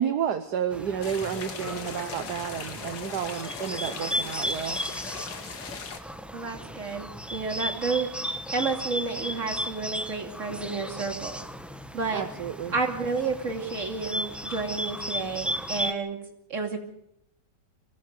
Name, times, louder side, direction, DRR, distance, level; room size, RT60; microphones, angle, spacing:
voice 1, 0.0-4.8 12.1-12.7, right 8 dB, 70° right, 8 dB, 1.6 m, -31 dB
Bird, 0.7-15.9, equal, ahead, 0.6 m, -35 dB
sound 1, 1.0-6.0, left 5 dB, 90° left, 2.4 m, -39 dB
voice 2, 6.3-11.5 11.9-12.2 12.7-16.2 16.5-16.8, right 4 dB, 45° right, 3 dB, 3.0 m, -31 dB
24.0 x 16.5 x 6.7 m, 0.75 s
omnidirectional pair, 1.9 m